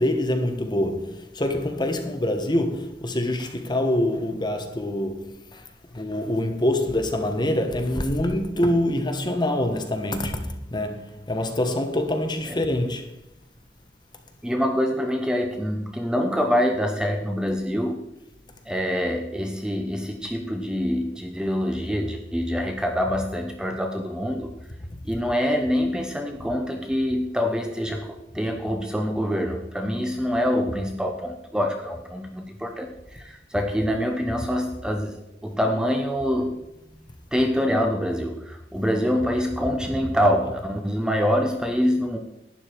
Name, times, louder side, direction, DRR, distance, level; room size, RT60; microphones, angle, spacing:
voice 1, 0.0-5.6 5.9-13.1, left 1 dB, 25° left, 1.3 m, -25 dB
voice 2, 14.4-18.0 18.7-24.5 25.0-36.6 37.3-42.2, equal, 5° right, 0.8 m, -25 dB
11.5 x 9.5 x 4.6 m
head